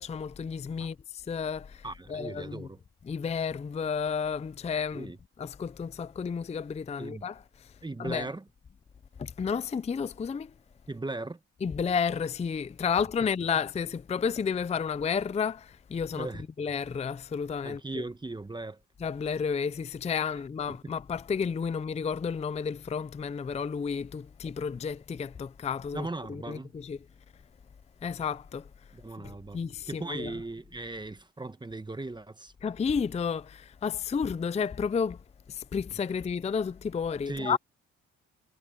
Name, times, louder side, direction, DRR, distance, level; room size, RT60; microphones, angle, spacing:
voice 1, 0.0-2.7 3.1-5.1 5.4-7.7 8.0-8.3 9.2-10.5 11.6-16.3 16.6-18.0 19.0-27.0 28.0-28.7 29.2-30.3 32.6-35.2 35.5-37.6, left 6 dB, 20° left, 0.5 m, -32 dB
voice 2, 1.8-2.8 4.9-5.2 7.0-7.2 7.8-8.4 10.9-11.4 16.2-16.4 17.6-18.8 20.7-20.9 25.9-26.7 28.9-32.5 37.3-37.6, right 2 dB, 15° right, 1.2 m, -38 dB
cardioid pair, 90°, 30 cm